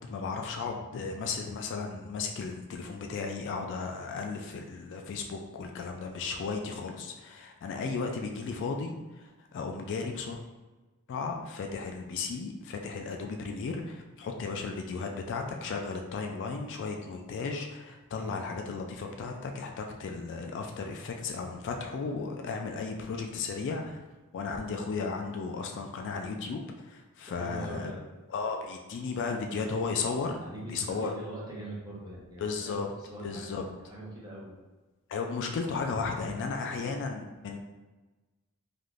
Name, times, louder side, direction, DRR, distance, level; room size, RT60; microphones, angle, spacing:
voice 1, 0.1-10.4 11.1-24.0 24.3-27.9 28.3-30.4 30.7-31.1 32.4-32.9 33.2-33.6 35.1-37.6, left 4 dB, 55° left, 3 dB, 0.3 m, -35 dB
voice 2, 27.2-28.0 30.4-33.5 33.8-34.5 36.6-37.0, right 1 dB, 20° right, -6 dB, 0.8 m, -42 dB
3.4 x 2.5 x 2.4 m, 1.2 s
head